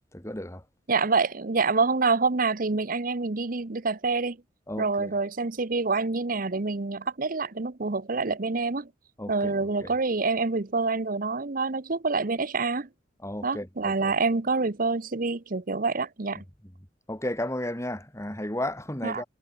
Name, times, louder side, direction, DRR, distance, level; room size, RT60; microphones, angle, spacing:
voice 1, 0.1-0.7 4.7-5.1 9.2-9.9 13.2-14.1 16.3-16.7 17.1-19.2, left 1 dB, 15° left, 3.8 m, -34 dB
voice 2, 0.9-4.4 4.8-8.9 9.3-12.9 13.4-16.4 19.0-19.2, right 4 dB, 45° right, 0.9 m, -27 dB
head